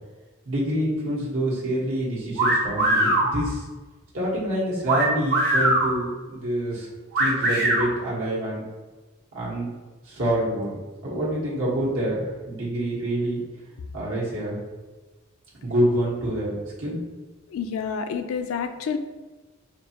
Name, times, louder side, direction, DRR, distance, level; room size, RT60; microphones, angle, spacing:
voice 1, 0.4-3.6 4.1-6.9 7.2-8.6 9.3-9.7 10.0-10.8 11.0-13.4 13.9-14.6 15.6-17.0, right 1 dB, 80° right, -7 dB, 1.4 m, -26 dB
sound 1, 2.4-3.3 4.9-5.9 7.1-7.9, right 1 dB, 55° right, 1.0 m, -21 dB
voice 2, 17.5-19.0, left 6 dB, 75° left, 8 dB, 0.3 m, -28 dB
4.4 x 2.8 x 2.9 m, 1.3 s
head